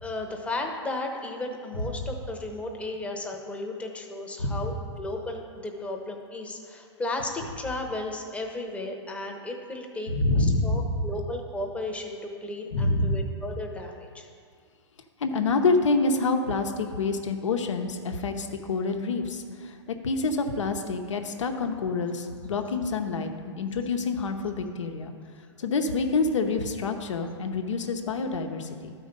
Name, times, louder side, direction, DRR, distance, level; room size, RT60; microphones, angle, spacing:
voice 1, 0.0-10.1 10.4-14.3, left 2 dB, 10° left, 2 dB, 0.9 m, -34 dB
voice 2, 4.4-4.7 10.1-11.1 12.7-13.3 15.2-23.3 23.6-25.1 25.6-28.9, left 3 dB, 80° left, 4 dB, 0.9 m, -27 dB
12.0 x 4.6 x 5.2 m, 2.1 s
hypercardioid pair, 130°, 15 cm